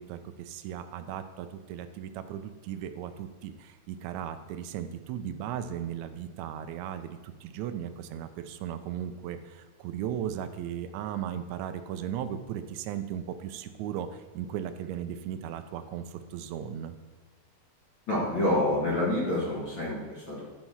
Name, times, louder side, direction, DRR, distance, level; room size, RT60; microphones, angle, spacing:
voice 1, 0.0-16.9, right 9 dB, 85° right, 9 dB, 1.6 m, -36 dB
voice 2, 18.1-20.4, left 1 dB, 40° left, -6 dB, 2.2 m, -27 dB
11.0 x 4.6 x 5.6 m, 1.3 s
omnidirectional pair, 3.8 m